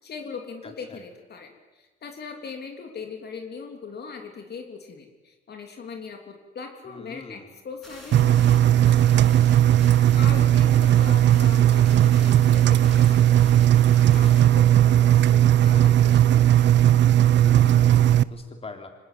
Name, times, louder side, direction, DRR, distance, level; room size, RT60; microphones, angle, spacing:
voice 1, 0.0-9.4 9.7-13.6 14.1-16.7, left 5 dB, 55° left, 4 dB, 3.2 m, -40 dB
voice 2, 6.9-7.5 17.4-18.9, left 3 dB, 30° left, 4 dB, 3.5 m, -42 dB
sound 1, 7.8-14.5, equal, ahead, 6.9 m, -47 dB
Engine, 8.1-18.2, right 11 dB, 65° right, 0.7 m, -17 dB
25.0 x 19.0 x 9.3 m, 1.2 s
cardioid pair, 90°, 20 cm